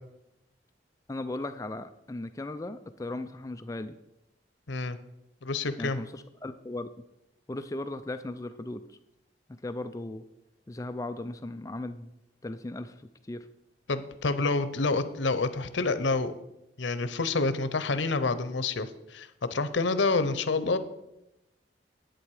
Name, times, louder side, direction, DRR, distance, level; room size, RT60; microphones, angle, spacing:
voice 1, 1.1-4.0 5.8-6.9 7.5-9.0 9.6-10.2 10.7-12.1 12.4-13.5, left 2 dB, 20° left, 10 dB, 0.4 m, -37 dB
voice 2, 5.4-6.0 13.9-16.3 16.8-20.8, left 3 dB, 90° left, 13 dB, 0.8 m, -28 dB
10.5 x 8.7 x 4.8 m, 0.88 s
head